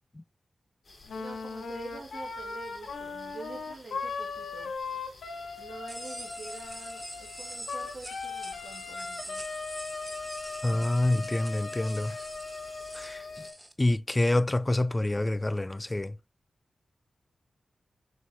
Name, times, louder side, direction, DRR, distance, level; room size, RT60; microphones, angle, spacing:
sound 1, 0.8-13.5, left 3 dB, 55° left, 4.6 m, -54 dB
Wind instrument woodwind instrument, 1.1-13.6, left 4 dB, 90° left, 1.7 m, -38 dB
voice 1, 1.2-4.7 5.6-9.4, right 3 dB, 50° right, 2.4 m, -46 dB
sound 2, 5.9-13.7, right 1 dB, 10° right, 1.5 m, -45 dB
voice 2, 10.6-12.1 12.9-13.2 13.8-16.1, left 1 dB, 25° left, 0.4 m, -27 dB
6.8 x 6.4 x 4.3 m
cardioid pair, 60°, 0 cm